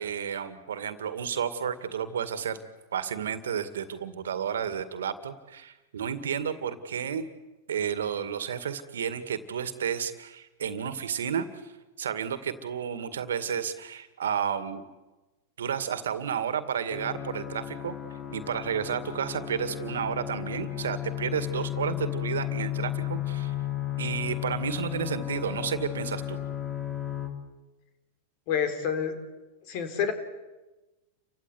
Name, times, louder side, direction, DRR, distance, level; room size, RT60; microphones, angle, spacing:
voice 1, 0.0-2.6 2.9-7.3 7.7-11.5 12.0-14.8 15.6-18.0 18.3-23.5 24.0-26.4, right 8 dB, 85° right, 12 dB, 2.1 m, -31 dB
sound 1, 16.9-27.3, left 12 dB, 30° left, 4.2 m, -34 dB
voice 2, 28.5-29.1 29.7-30.1, left 8 dB, 55° left, 9 dB, 4.4 m, -28 dB
30.0 x 16.0 x 9.8 m, 1.1 s
hypercardioid pair, 105°, 0 cm